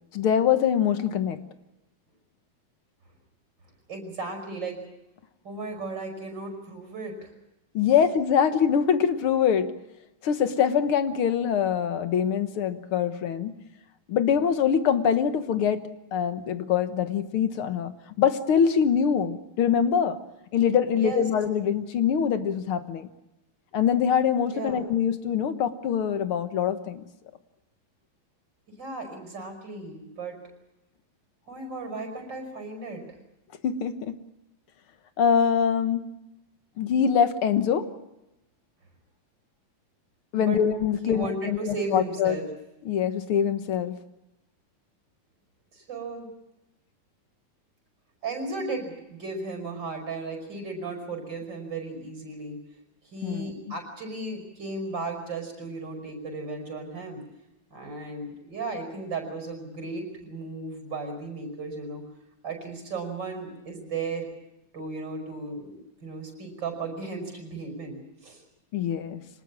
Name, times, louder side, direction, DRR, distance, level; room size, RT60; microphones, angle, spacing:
voice 1, 0.1-1.4 7.7-9.7 10.2-13.5 14.1-17.9 18.2-20.2 20.5-23.1 23.7-27.0 33.6-34.1 35.2-36.0 36.8-37.9 40.3-42.4 42.9-44.0 53.2-53.5 68.7-69.2, left 8 dB, 80° left, 10 dB, 2.1 m, -24 dB
voice 2, 3.9-4.8 5.4-7.3 20.9-21.2 24.5-24.8 28.7-30.4 31.5-33.0 40.3-40.6 41.0-42.5 45.7-46.3 48.2-52.6 53.0-57.2 57.7-62.0 62.4-64.3 64.7-68.4, right 3 dB, 50° right, 4 dB, 6.1 m, -35 dB
25.0 x 20.0 x 7.3 m, 0.94 s
omnidirectional pair, 2.4 m